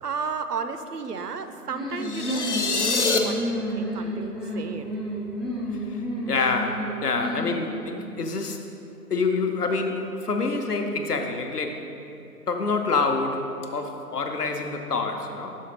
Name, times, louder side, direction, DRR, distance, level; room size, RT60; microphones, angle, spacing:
voice 1, 0.0-4.9, right 5 dB, 80° right, 8 dB, 0.6 m, -33 dB
sound 1, 1.7-8.1, equal, ahead, 0.4 m, -31 dB
sound 2, 2.0-3.2, left 4 dB, 50° left, 0.5 m, -25 dB
voice 2, 5.9-8.6 9.1-11.8 12.5-15.5, left 4 dB, 75° left, 4 dB, 0.8 m, -27 dB
6.4 x 4.4 x 5.2 m, 2.8 s
figure-of-eight pair, 150°, 47 cm